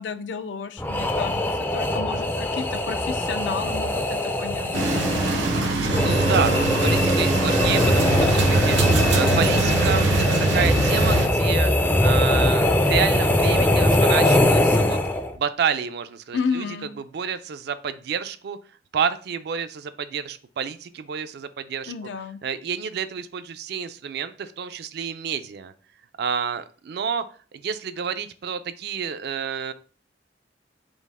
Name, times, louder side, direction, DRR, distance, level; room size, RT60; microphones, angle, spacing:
voice 1, 0.0-4.7 16.3-16.9 21.9-22.4, left 5 dB, 80° left, 10 dB, 0.4 m, -31 dB
sound 1, 0.8-15.4, left 1 dB, 10° left, 0.3 m, -22 dB
sound 2, 4.7-11.3, right 2 dB, 90° right, 0.7 m, -22 dB
voice 2, 6.0-15.0 15.3-16.6 17.1-18.6 18.9-21.9 22.4-25.7 26.2-27.2 27.5-29.7, right 7 dB, 60° right, 11 dB, 0.4 m, -29 dB
5.2 x 2.0 x 3.3 m, 0.39 s
head